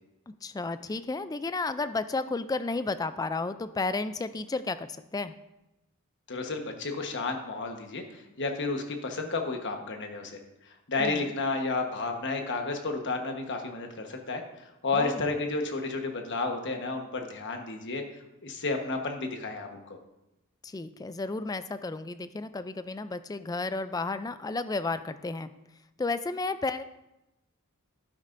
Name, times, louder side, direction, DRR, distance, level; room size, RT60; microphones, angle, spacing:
voice 1, 0.4-5.3 11.0-11.3 14.9-15.3 20.6-25.5 26.0-26.8, left 3 dB, 15° left, 12 dB, 0.3 m, -32 dB
voice 2, 6.3-10.4 10.9-18.0 18.4-20.0, left 3 dB, 55° left, 4 dB, 1.2 m, -32 dB
11.5 x 9.7 x 2.6 m, 0.93 s
head